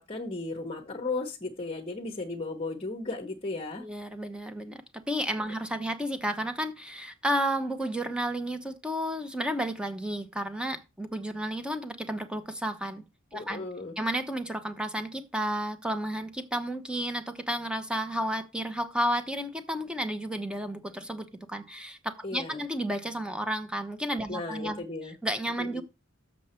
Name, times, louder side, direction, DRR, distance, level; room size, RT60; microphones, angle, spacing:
voice 1, 0.0-3.8 13.3-13.9 22.2-22.6 24.3-25.2 25.6-25.8, left 3 dB, 30° left, 0.9 m, -35 dB
voice 2, 3.8-4.8 5.1-13.0 13.3-13.7 14.0-25.8, equal, 5° right, 0.8 m, -32 dB
7.2 x 6.5 x 4.3 m
head